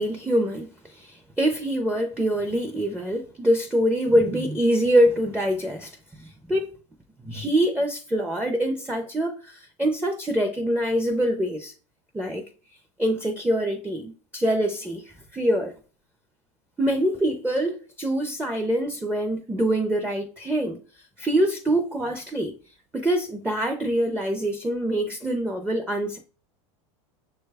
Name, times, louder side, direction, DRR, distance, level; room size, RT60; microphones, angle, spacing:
voice 1, 0.0-6.7 7.2-11.7 12.1-12.4 13.0-15.7 16.8-20.8 21.2-22.5 22.9-26.2, right 1 dB, 5° right, 0.5 m, -24 dB
6.2 x 2.2 x 3.3 m
supercardioid pair, 120°, 16 cm